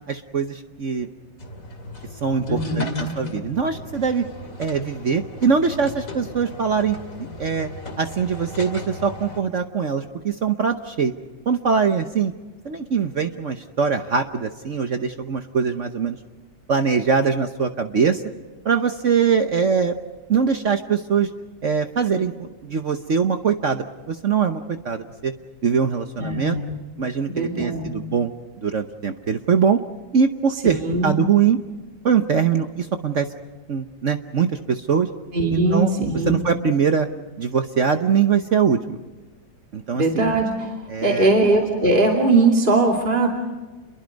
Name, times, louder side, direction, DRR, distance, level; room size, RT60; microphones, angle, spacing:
voice 1, 0.1-1.1 2.2-4.2 4.6-7.0 7.4-7.7 8.0-11.1 11.5-12.3 12.6-16.2 16.7-18.2 18.6-20.0 20.3-21.3 21.6-25.3 25.6-26.6 27.0-28.3 28.6-29.8 30.1-31.6 32.0-33.3 33.7-35.1 35.5-35.9 36.3-37.1 37.4-39.0 39.7-40.3 40.9-41.3, right 6 dB, 50° right, 7 dB, 1.1 m, -22 dB
sound 1, 1.4-9.4, left 1 dB, 45° left, 2.8 m, -37 dB
voice 2, 2.5-3.1 26.2-26.8 27.3-27.9 30.6-31.1 35.3-36.4 39.9-40.8 41.0-43.3, right 2 dB, 25° right, 0 dB, 2.8 m, -20 dB
29.5 x 22.5 x 5.2 m, 1.3 s
omnidirectional pair, 2.0 m